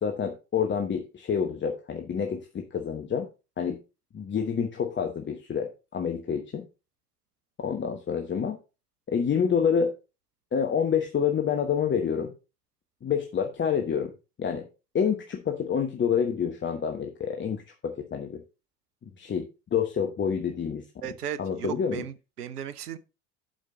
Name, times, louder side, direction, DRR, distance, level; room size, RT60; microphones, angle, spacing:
voice 1, 0.0-3.3 3.6-3.8 4.1-6.7 7.6-8.6 9.1-9.9 10.5-12.3 13.0-14.1 14.4-14.7 14.9-18.4 19.2-21.1 21.4-22.0, left 7 dB, 25° left, 1.1 m, -28 dB
voice 2, 21.0-23.0, right 9 dB, 80° right, 0.8 m, -36 dB
11.5 x 5.1 x 3.8 m
figure-of-eight pair, 70°, 46 cm